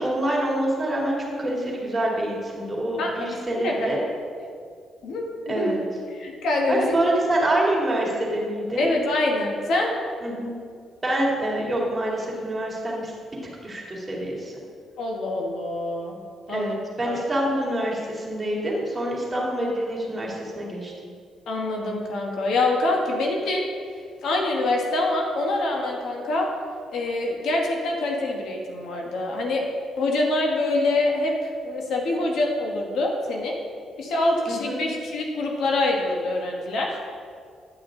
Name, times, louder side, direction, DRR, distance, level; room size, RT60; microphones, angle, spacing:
voice 1, 0.0-4.0 5.5-5.8 6.7-8.9 10.2-10.5 11.0-13.1 13.6-14.5 16.5-20.9 34.5-34.8, right 1 dB, 20° right, -4 dB, 2.3 m, -26 dB
voice 2, 3.0-3.9 4.4-4.5 5.0-5.7 6.1-6.9 8.8-10.0 15.0-16.2 16.5-16.7 17.0-17.2 21.5-23.6 24.2-26.5 26.9-29.6 30.0-33.5 34.0-37.0, left 2 dB, 70° left, 0 dB, 1.3 m, -25 dB
10.0 x 6.2 x 3.8 m, 2.1 s
cardioid pair, 90°, 0 cm